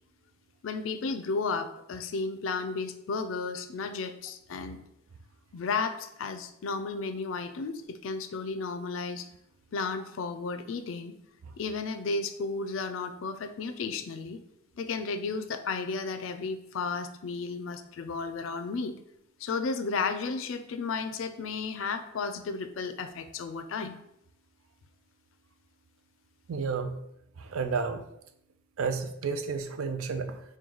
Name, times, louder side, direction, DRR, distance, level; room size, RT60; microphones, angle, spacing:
voice 1, 0.6-4.8 5.5-9.3 9.7-11.2 11.6-14.4 14.8-19.0 19.4-24.0, left 4 dB, 70° left, 9 dB, 0.4 m, -33 dB
voice 2, 26.5-27.0 27.4-28.0 28.8-30.4, right 5 dB, 90° right, 7 dB, 0.4 m, -31 dB
3.8 x 2.2 x 4.5 m, 0.77 s
head